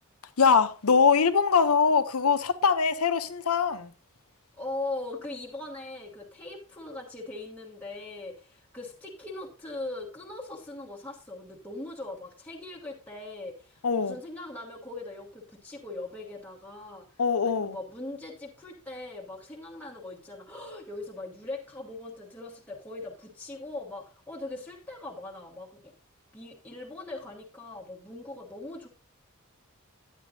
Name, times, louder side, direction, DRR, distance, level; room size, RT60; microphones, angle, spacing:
voice 1, 0.4-3.9 13.8-14.1 17.2-17.8, left 5 dB, 85° left, 0.8 m, -23 dB
voice 2, 4.6-25.9 26.3-28.9, left 2 dB, 10° left, 1.2 m, -40 dB
10.0 x 9.1 x 2.7 m
head